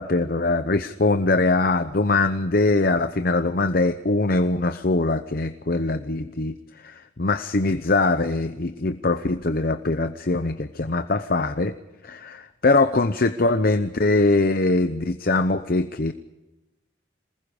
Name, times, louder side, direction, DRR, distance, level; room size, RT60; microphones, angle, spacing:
voice 1, 0.0-6.6 6.8-11.7 12.0-16.1, left 2 dB, 50° left, 10 dB, 0.8 m, -22 dB
27.0 x 20.5 x 5.0 m, 1.0 s
head